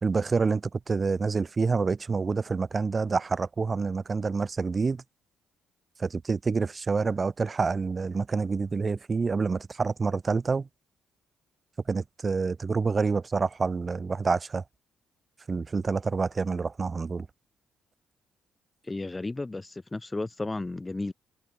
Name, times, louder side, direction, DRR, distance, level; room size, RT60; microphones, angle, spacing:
voice 1, 0.0-5.0 6.0-10.7 11.9-14.6 15.5-17.3, right 4 dB, 30° right, 0.9 m, -27 dB
voice 2, 18.8-21.1, left 2 dB, 20° left, 3.4 m, -33 dB
cardioid pair, 90°, 0 cm